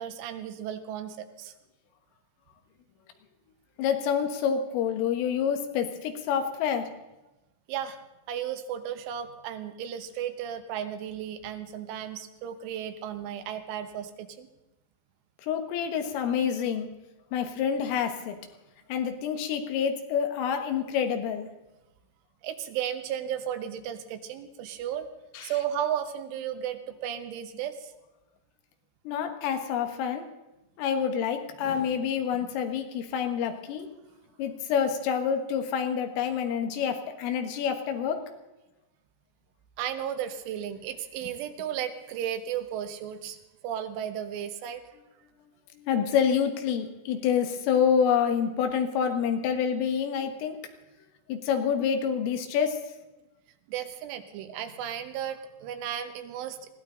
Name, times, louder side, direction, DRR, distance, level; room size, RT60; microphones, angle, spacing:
voice 1, 0.0-1.5 7.7-8.0 8.3-14.5 22.4-25.1 25.4-27.9 39.8-43.4 43.6-44.8 53.7-56.6, right 9 dB, 80° right, 8 dB, 3.5 m, -34 dB
voice 2, 3.8-6.9 15.4-16.9 17.3-18.4 18.9-21.5 25.4-25.5 29.1-30.3 30.8-33.9 34.4-38.2 45.8-50.6 51.3-52.8, left 7 dB, 90° left, 6 dB, 4.0 m, -27 dB
21.0 x 16.0 x 3.9 m, 1.0 s
omnidirectional pair, 5.6 m